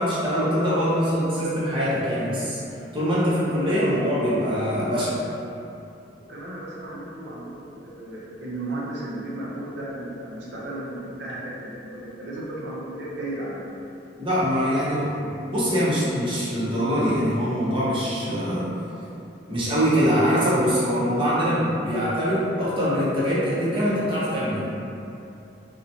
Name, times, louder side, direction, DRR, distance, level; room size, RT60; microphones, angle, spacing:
voice 1, 0.0-2.6 2.9-5.2 14.2-18.7 19.5-24.6, equal, 30° right, -9 dB, 0.7 m, -23 dB
voice 2, 6.2-13.7, right 1 dB, 65° right, -5 dB, 0.6 m, -34 dB
2.8 x 2.1 x 2.7 m, 2.7 s
head